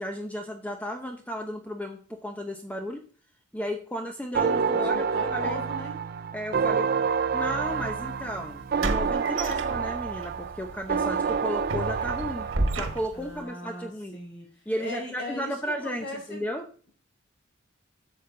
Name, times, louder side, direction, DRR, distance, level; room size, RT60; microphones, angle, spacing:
voice 1, 0.0-3.0 3.5-5.6 6.3-7.0 7.3-14.2 14.7-16.7, equal, 10° left, 4 dB, 0.7 m, -34 dB
sound 1, 4.3-13.1, right 6 dB, 50° right, 0.4 m, -28 dB
voice 2, 4.6-6.0 13.1-14.5 14.8-16.4, equal, 60° left, 1 dB, 4.6 m, -38 dB
sound 2, 7.7-7.8 8.8-10.3 10.7-10.8 11.3-13.4, right 2 dB, 90° right, 1.4 m, -31 dB
11.0 x 7.2 x 3.8 m, 0.41 s
head